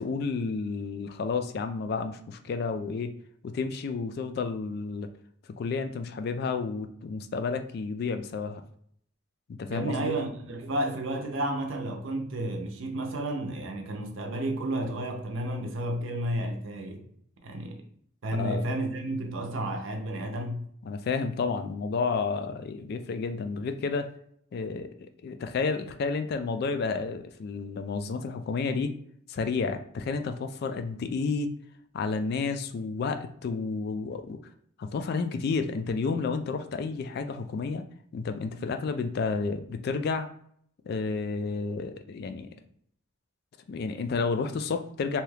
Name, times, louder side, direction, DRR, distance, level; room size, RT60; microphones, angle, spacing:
voice 1, 0.0-3.1 3.4-5.1 5.6-8.6 9.5-10.2 18.3-18.7 20.8-24.1 24.5-28.9 29.3-31.5 31.9-34.4 34.8-37.8 38.1-40.3 40.8-42.5 43.7-45.2, left 4 dB, 55° left, 0.3 m, -31 dB
voice 2, 9.7-17.0 17.4-17.8 18.2-20.6, right 1 dB, 75° right, 0.6 m, -32 dB
2.8 x 2.3 x 3.2 m
head